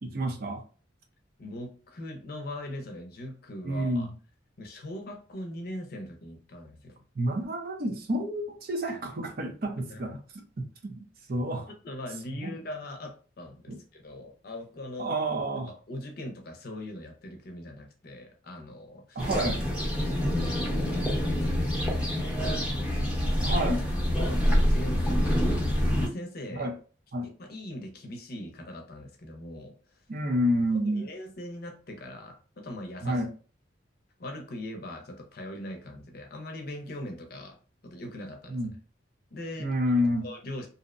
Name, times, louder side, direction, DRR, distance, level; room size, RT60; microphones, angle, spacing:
voice 1, 0.0-0.6 3.6-4.1 7.2-10.1 10.6-11.7 12.3-12.5 13.7-13.8 15.0-15.7 19.2-19.7 23.4-23.8 26.5-26.7 27.1-27.3 30.1-31.1 33.0-33.3 38.5-38.7 39.6-40.3, equal, 50° right, 0.5 m, -29 dB
voice 2, 1.4-4.1 4.6-7.0 9.9-10.2 11.7-15.2 15.7-19.2 19.7-23.1 24.1-26.7 27.2-29.7 30.8-33.2 34.2-37.6 37.8-38.6 39.3-40.0 40.2-40.7, left 1 dB, 50° left, 0.6 m, -41 dB
sound 1, 19.2-26.1, equal, 5° right, 0.8 m, -26 dB
2.6 x 2.0 x 2.5 m
head